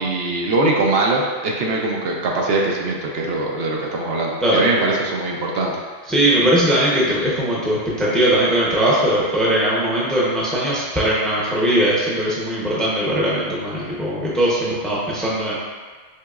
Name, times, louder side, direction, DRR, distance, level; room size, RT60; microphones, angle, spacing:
voice 1, 0.0-5.7, right 2 dB, 70° right, -1 dB, 0.8 m, -21 dB
voice 2, 6.1-15.6, right 1 dB, ahead, -6 dB, 0.5 m, -19 dB
4.5 x 3.0 x 2.3 m, 1.5 s
omnidirectional pair, 1.1 m